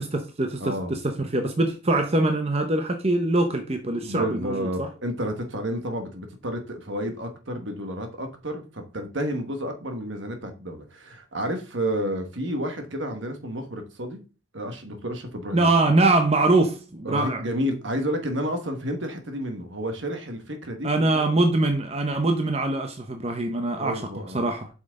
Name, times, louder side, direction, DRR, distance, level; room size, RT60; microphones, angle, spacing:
voice 1, 0.0-4.9 15.5-17.4 20.8-24.0 24.3-24.7, right 2 dB, 30° right, 0.7 m, -23 dB
voice 2, 0.6-1.0 3.9-14.2 14.5-15.7 17.0-21.2 23.7-24.5, equal, 65° right, 1.5 m, -31 dB
7.7 x 6.1 x 3.7 m
head